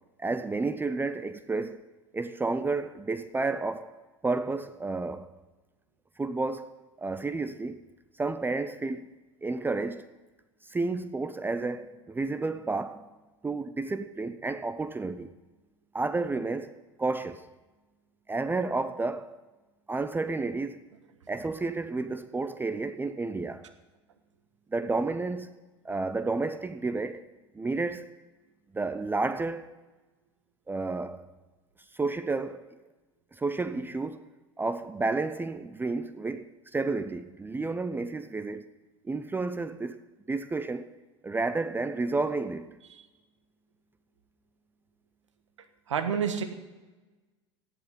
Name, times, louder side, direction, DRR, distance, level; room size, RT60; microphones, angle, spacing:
voice 1, 0.2-1.8 2.1-3.9 4.2-5.3 6.2-7.8 8.2-9.1 9.4-10.1 10.6-13.1 13.4-15.3 15.9-17.5 18.3-19.3 19.9-20.8 21.3-23.7 24.7-25.5 25.8-27.3 27.5-28.1 28.7-29.7 30.7-31.3 31.9-32.7 33.3-34.2 34.6-38.6 39.0-40.0 40.3-40.9 41.2-42.8, right 3 dB, 15° right, 0.6 m, -31 dB
voice 2, 45.9-46.4, right 7 dB, 80° right, 1.4 m, -29 dB
14.0 x 11.5 x 5.4 m
hypercardioid pair, 80°, 15 cm